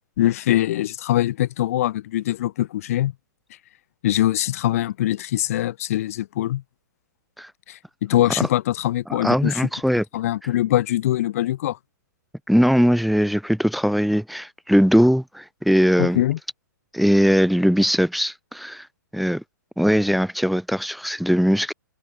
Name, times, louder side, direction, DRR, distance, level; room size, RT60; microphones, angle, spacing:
voice 1, 0.2-3.1 4.0-6.6 7.7-9.7 10.1-11.8 16.0-16.4, left 14 dB, 45° left, 7.3 m, -23 dB
voice 2, 9.1-10.0 12.5-16.2 16.9-18.9 19.1-19.4 19.8-21.7, equal, ahead, 3.9 m, -20 dB
figure-of-eight pair, 120°, 11 cm